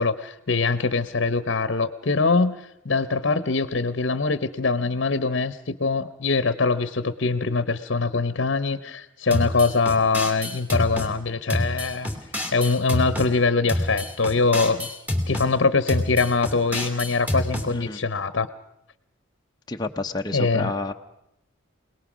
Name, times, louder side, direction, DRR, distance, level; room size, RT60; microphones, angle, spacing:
voice 1, 0.0-2.6 2.8-12.1 12.5-14.9 15.3-18.5 20.3-20.7, left 4 dB, 65° left, 14 dB, 0.9 m, -23 dB
sound 1, 9.3-11.1 11.5-13.3 13.7-15.5 15.9-17.7, left 1 dB, 10° right, 2.5 m, -27 dB
voice 2, 17.7-18.0 19.7-20.9, left 2 dB, 20° left, 3 dB, 0.7 m, -29 dB
25.5 x 19.0 x 6.1 m, 0.82 s
head